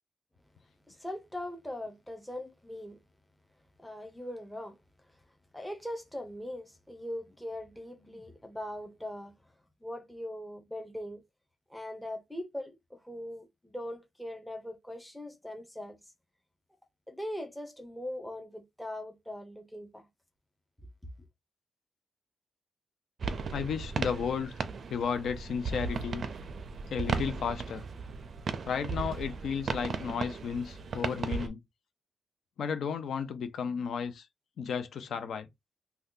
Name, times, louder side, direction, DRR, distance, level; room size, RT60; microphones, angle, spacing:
voice 1, 0.9-3.0 3.8-4.8 5.5-9.3 9.8-11.2 11.7-16.0 17.1-20.1, left 1 dB, 5° left, 0.6 m, -41 dB
sound 1, 23.2-31.5, right 5 dB, 45° right, 0.4 m, -36 dB
voice 2, 23.5-24.5 24.9-26.2 26.9-27.8 28.7-31.6 32.6-34.3 34.6-35.5, left 6 dB, 70° left, 0.5 m, -33 dB
2.7 x 2.2 x 3.6 m
wide cardioid pair, 155°, 0 cm